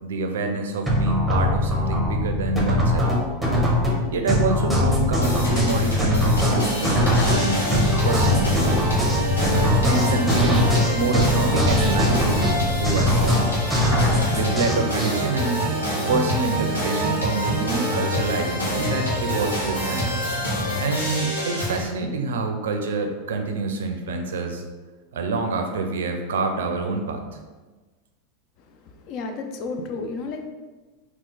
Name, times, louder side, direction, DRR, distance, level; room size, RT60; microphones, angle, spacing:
voice 1, 0.0-3.2 4.1-7.6 8.0-8.9 9.6-10.7 10.9-13.5 14.4-15.7 16.1-20.2 20.8-24.6 25.1-27.3, right 3 dB, 65° right, 5 dB, 0.4 m, -27 dB
sound 1, 0.9-15.1, left 1 dB, ahead, 0.9 m, -21 dB
sound 2, 5.2-21.8, equal, 80° left, 1.1 m, -25 dB
voice 2, 28.6-30.5, left 3 dB, 45° left, 5 dB, 0.4 m, -32 dB
3.7 x 2.4 x 3.8 m, 1.3 s
figure-of-eight pair, 85°, 0 cm